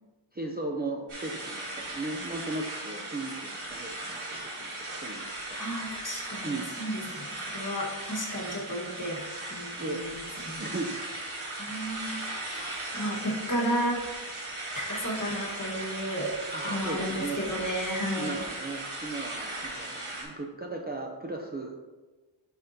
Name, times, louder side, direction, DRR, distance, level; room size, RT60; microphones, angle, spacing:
voice 1, 0.3-5.6 6.4-6.7 9.8-10.1 10.6-11.0 16.5-17.4 18.1-21.8, right 2 dB, 20° right, 0 dB, 0.4 m, -36 dB
sound 1, 1.1-20.3, right 2 dB, 80° right, 1.8 m, -37 dB
voice 2, 5.6-9.2 9.5-10.1 10.4-10.6 11.6-12.6 12.9-14.0 14.8-16.3 16.6-18.4, equal, 40° left, -2 dB, 1.3 m, -33 dB
9.8 x 3.6 x 2.6 m, 1.3 s
wide cardioid pair, 95°, 48 cm